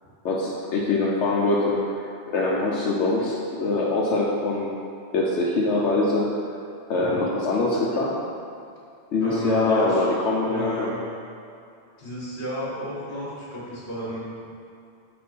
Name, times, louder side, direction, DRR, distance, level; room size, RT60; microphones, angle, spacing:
voice 1, 0.2-1.8 2.3-4.7 5.1-6.3 6.9-8.1 9.1-10.9, left 2 dB, 90° left, -5 dB, 1.1 m, -23 dB
voice 2, 9.2-10.1 10.4-11.0 12.0-14.3, equal, 55° left, -9 dB, 1.9 m, -33 dB
6.9 x 4.3 x 5.5 m, 2.5 s
omnidirectional pair, 1.2 m